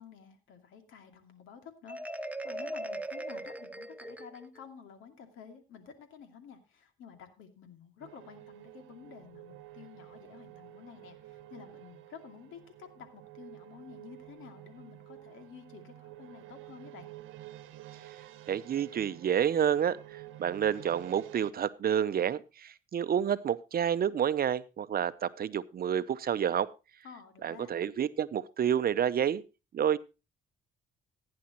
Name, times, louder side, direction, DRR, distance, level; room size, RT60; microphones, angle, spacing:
voice 1, 0.0-17.1 27.0-27.7, left 7 dB, 85° left, 7 dB, 2.5 m, -51 dB
Marimba xylophone, 1.9-4.6, right 1 dB, 5° right, 0.7 m, -39 dB
sound 1, 8.0-21.5, right 15 dB, 85° right, 1.0 m, -50 dB
voice 2, 18.5-26.7 27.4-29.4 29.7-30.0, right 9 dB, 50° right, 14 dB, 0.7 m, -29 dB
15.5 x 9.7 x 3.0 m, 0.29 s
cardioid pair, 90°, 20 cm